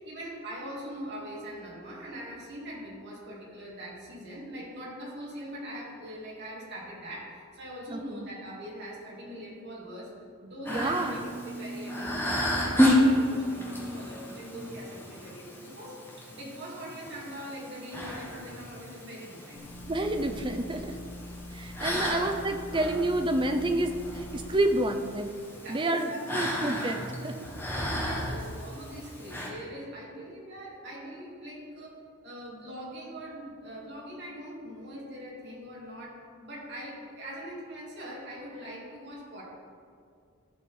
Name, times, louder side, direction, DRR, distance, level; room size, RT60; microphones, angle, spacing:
voice 1, 0.0-10.1 10.4-19.6 21.8-22.5 25.5-26.4 27.7-39.4, equal, 50° right, -5 dB, 2.5 m, -42 dB
voice 2, 7.9-8.2 10.7-11.2 19.9-20.9 21.5-25.3 25.7-27.3, right 1 dB, 20° right, 6 dB, 0.5 m, -29 dB
sound 1, 10.7-29.5, left 1 dB, 10° left, 1.3 m, -32 dB
sound 2, 19.6-24.6, left 1 dB, 80° left, 1.6 m, -43 dB
14.5 x 5.0 x 4.4 m, 2.2 s
head